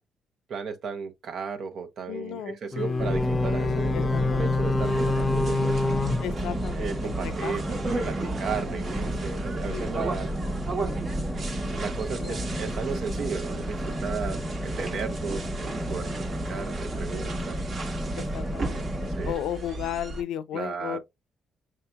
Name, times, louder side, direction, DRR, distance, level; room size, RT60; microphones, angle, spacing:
voice 1, 0.5-5.8 6.7-7.6 8.0-10.3 11.7-17.7 19.1-19.4 20.5-21.0, right 6 dB, 65° right, 0.9 m, -35 dB
voice 2, 2.1-3.1 3.9-4.6 6.2-7.8 8.2-8.4 9.7-10.2 12.2-12.6 14.3-14.4 16.1-16.4 18.1-21.0, left 10 dB, 85° left, 0.4 m, -36 dB
sound 1, 2.7-7.2, left 3 dB, 30° left, 0.5 m, -27 dB
sound 2, 3.0-19.3, right 1 dB, 5° right, 1.0 m, -32 dB
sound 3, 4.8-20.2, right 3 dB, 50° right, 1.2 m, -36 dB
6.3 x 2.8 x 2.3 m
cardioid pair, 90°, 0 cm